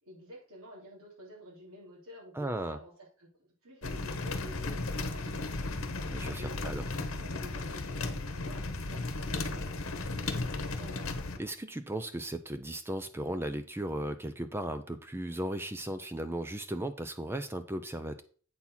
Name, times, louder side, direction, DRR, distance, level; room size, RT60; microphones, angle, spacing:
voice 1, 0.0-2.9 3.2-11.1, equal, 85° right, -3 dB, 3.4 m, -51 dB
voice 2, 2.3-2.8 6.1-6.8 11.4-18.2, right 1 dB, 10° right, 10 dB, 0.5 m, -36 dB
sound 1, 3.8-11.4, left 3 dB, 75° left, 1.0 m, -35 dB
8.4 x 4.4 x 5.7 m, 0.42 s
head